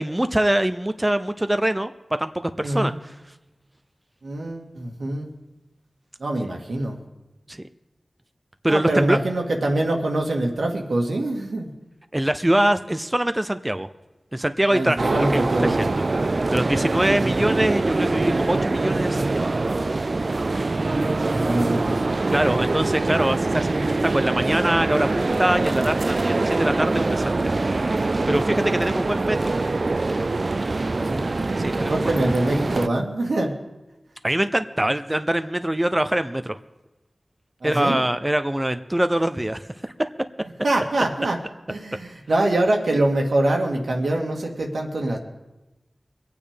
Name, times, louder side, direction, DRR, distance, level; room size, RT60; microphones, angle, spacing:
voice 1, 0.0-1.9 2.2-3.1 7.5-7.6 8.6-9.2 12.1-13.9 14.3-15.9 16.5-19.5 22.3-27.5 28.3-29.5 31.6-32.2 34.2-36.6 37.6-40.1, right 1 dB, 15° right, 9 dB, 0.6 m, -23 dB
voice 2, 2.6-2.9 4.2-5.3 6.2-7.0 8.7-11.7 14.7-16.0 21.2-22.0 30.9-31.3 31.8-33.5 37.6-38.0 40.6-41.4 41.7-45.2, right 1 dB, 90° right, 1 dB, 2.1 m, -24 dB
sound 1, 15.0-32.9, right 3 dB, 55° right, 0.4 m, -24 dB
23.0 x 8.8 x 5.2 m, 1.0 s
wide cardioid pair, 60°, 0 cm